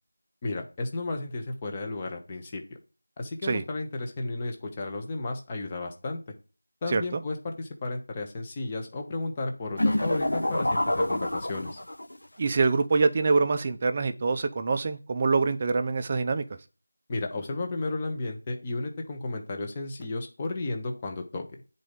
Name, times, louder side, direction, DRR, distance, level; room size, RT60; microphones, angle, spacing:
voice 1, 0.4-2.6 3.2-6.2 6.8-11.8 17.1-21.4, left 2 dB, 10° left, 3 dB, 0.7 m, -33 dB
voice 2, 6.9-7.2 12.4-16.4, right 4 dB, 15° right, 9 dB, 0.4 m, -25 dB
sound 1, 9.8-12.2, left 1 dB, 80° left, 1.3 m, -27 dB
9.3 x 4.0 x 5.1 m, 0.36 s
figure-of-eight pair, 180°, 0 cm